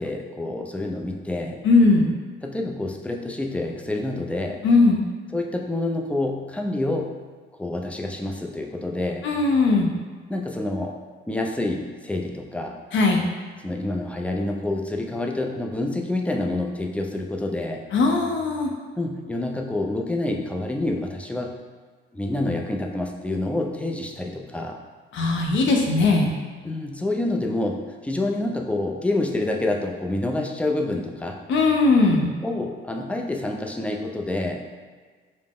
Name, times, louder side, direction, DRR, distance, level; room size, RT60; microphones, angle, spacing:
voice 1, 0.0-1.6 2.4-4.6 5.3-7.1 7.6-9.3 10.3-11.0 11.3-12.8 13.6-17.8 19.0-21.6 22.1-24.8 26.6-31.4 32.4-34.6, left 2 dB, 5° left, 1 dB, 0.4 m, -27 dB
voice 2, 1.6-2.1 4.6-5.0 9.2-9.9 12.9-13.3 17.9-18.7 25.1-26.3 31.5-32.3, left 3 dB, 75° left, 2 dB, 0.7 m, -19 dB
5.0 x 2.1 x 3.6 m, 1.5 s
cardioid pair, 90°, 20 cm